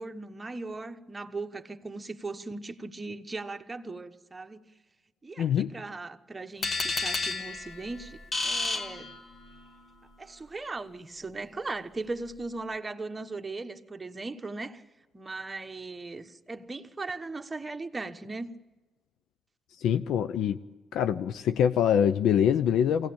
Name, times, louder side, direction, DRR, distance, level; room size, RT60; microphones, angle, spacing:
voice 1, 0.0-4.7 5.2-8.2 8.4-9.1 10.2-14.8 15.1-18.5, right 3 dB, 20° right, 1.2 m, -38 dB
voice 2, 5.4-5.8 19.8-20.6 20.9-23.1, left 8 dB, 80° left, 0.6 m, -24 dB
sound 1, 6.6-9.6, left 3 dB, 40° left, 1.8 m, -31 dB
23.5 x 17.5 x 8.7 m
cardioid pair, 90°, 0 cm